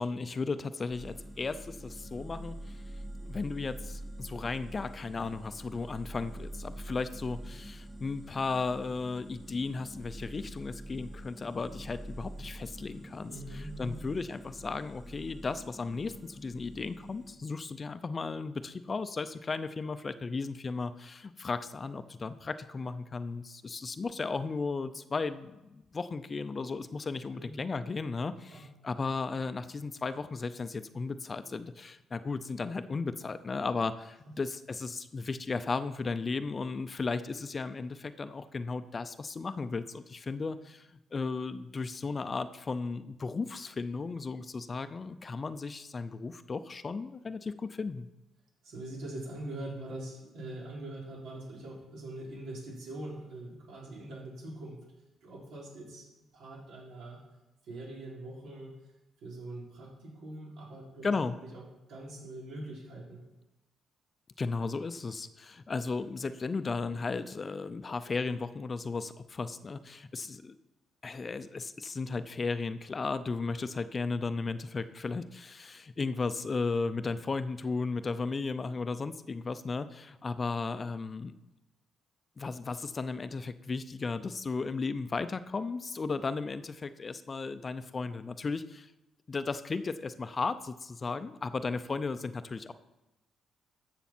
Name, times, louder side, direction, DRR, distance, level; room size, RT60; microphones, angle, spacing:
voice 1, 0.0-2.8 3.3-13.3 13.8-48.1 61.0-61.4 64.4-70.6 71.0-81.4 82.4-88.9 89.3-92.7, left 4 dB, 35° left, 12 dB, 0.5 m, -35 dB
sound 1, 0.9-17.4, right 1 dB, 10° right, 1.7 m, -45 dB
voice 2, 13.3-14.0 27.3-27.5 28.5-28.7 48.6-54.8 55.2-56.1 56.3-57.2 57.6-58.8 59.2-61.1 61.5-61.6 61.9-63.2, right 1 dB, 85° right, -3 dB, 3.5 m, -43 dB
13.0 x 6.9 x 4.4 m, 0.97 s
cardioid pair, 90°, 0 cm